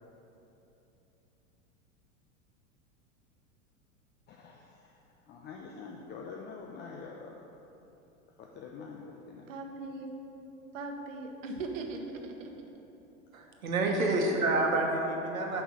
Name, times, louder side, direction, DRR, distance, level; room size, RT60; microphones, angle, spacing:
voice 1, 4.3-4.9 5.3-7.4 8.4-9.4 14.1-14.5, left 5 dB, 25° left, 0 dB, 0.5 m, -46 dB
voice 2, 9.5-10.1 10.7-12.6 13.9-14.7, right 3 dB, 70° right, 4 dB, 1.1 m, -40 dB
voice 3, 13.3-15.6, right 2 dB, 85° right, 1 dB, 1.2 m, -28 dB
5.6 x 5.5 x 6.3 m, 3.0 s
hypercardioid pair, 100°, 40 cm